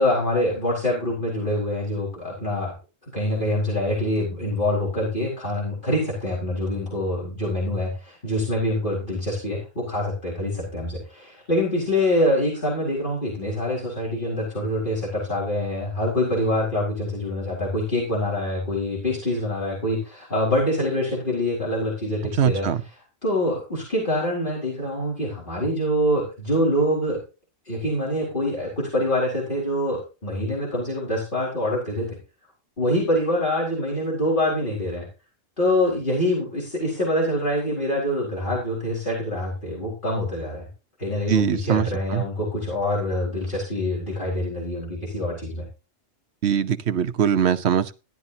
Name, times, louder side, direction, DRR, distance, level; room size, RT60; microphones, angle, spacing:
voice 1, 0.0-2.7 3.1-22.7 23.2-27.2 27.7-32.2 32.8-35.1 35.6-40.7 41.0-45.6, left 1 dB, 40° left, -4 dB, 5.0 m, -25 dB
voice 2, 22.4-22.8 41.3-42.2 46.4-47.9, right 8 dB, 60° right, 10 dB, 1.1 m, -22 dB
14.5 x 11.5 x 2.8 m, 0.30 s
omnidirectional pair, 1.3 m